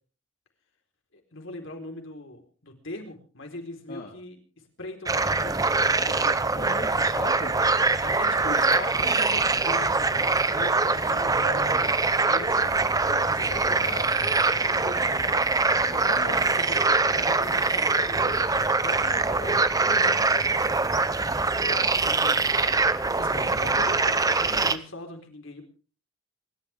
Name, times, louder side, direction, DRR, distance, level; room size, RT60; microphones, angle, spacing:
voice 1, 1.1-4.4 4.8-6.5 8.0-10.1 10.5-11.8 12.3-15.5 15.9-21.0 21.3-25.6, left 2 dB, 60° left, 4 dB, 4.1 m, -41 dB
sound 1, 5.1-24.8, right 3 dB, 15° right, 0.7 m, -23 dB
voice 2, 6.5-7.6 11.1-11.9 12.5-12.9 13.7-14.0 16.2-16.4 23.2-24.0, left 2 dB, 45° left, 0 dB, 2.7 m, -40 dB
28.0 x 12.5 x 3.5 m, 0.37 s
head